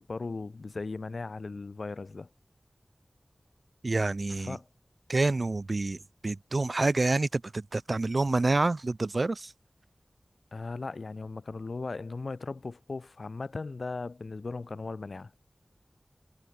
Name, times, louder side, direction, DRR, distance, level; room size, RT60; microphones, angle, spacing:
voice 1, 0.0-2.3 4.3-4.7 10.5-15.3, left 3 dB, 75° left, 0.8 m, -37 dB
voice 2, 3.8-4.6 5.1-9.5, right 2 dB, 55° right, 0.7 m, -28 dB
wide cardioid pair, 70°, 0 cm